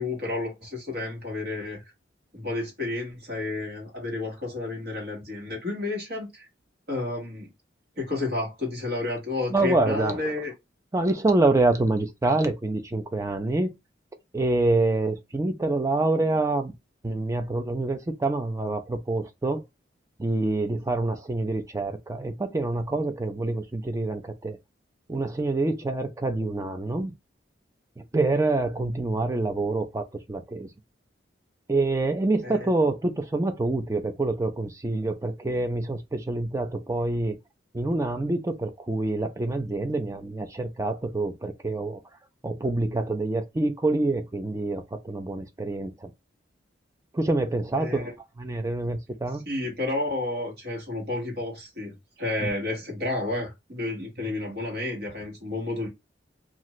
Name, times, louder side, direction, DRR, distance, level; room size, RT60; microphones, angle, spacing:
voice 1, 0.0-1.8 2.3-6.4 6.9-7.5 8.0-10.5 32.4-32.7 47.8-48.1 49.5-55.9, left 2 dB, 55° right, 1.4 m, -31 dB
voice 2, 9.5-10.2 10.9-13.7 14.3-16.7 17.0-19.6 20.2-24.6 25.1-27.1 28.1-30.7 31.7-37.4 37.7-42.0 42.4-46.1 47.1-48.1 48.4-49.4 52.4-52.5, right 2 dB, 15° right, 0.4 m, -26 dB
2.7 x 2.5 x 2.9 m
head